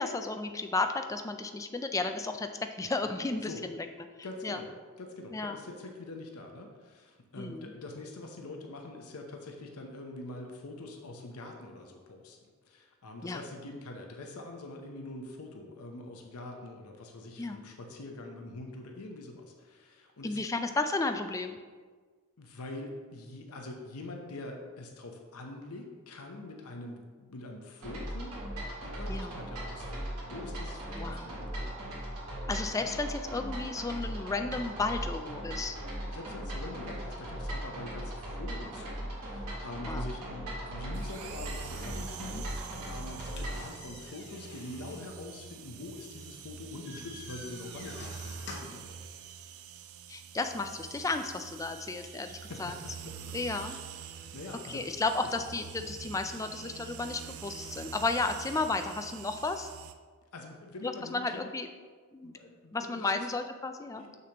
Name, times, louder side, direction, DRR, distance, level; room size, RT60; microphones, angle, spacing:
voice 1, 0.0-2.5 2.8-3.8 4.4-4.6 5.3-5.6 7.4-7.7 13.2-13.4 17.4-17.6 20.2-21.6 29.1-29.3 31.0-31.2 32.5-35.8 39.9-40.0 50.1-52.7 53.3-53.8 54.7-59.7 60.8-61.7 62.1-62.3 62.7-64.0, left 3 dB, 15° left, 7 dB, 0.3 m, -33 dB
voice 2, 4.2-4.7 5.0-12.4 12.6-20.5 22.4-28.4 28.8-31.8 36.0-49.1 52.4-53.1 53.6-55.0 55.2-55.3 60.3-61.5 62.2-63.3 63.9-64.1, left 2 dB, 70° left, 3 dB, 0.7 m, -44 dB
sound 1, 27.8-43.7, right 1 dB, 90° right, 2.0 m, -38 dB
sound 2, 40.9-59.9, right 7 dB, 65° right, 0.4 m, -46 dB
sound 3, 43.1-48.9, left 3 dB, 55° left, 1.0 m, -49 dB
6.6 x 6.5 x 2.9 m, 1.5 s
head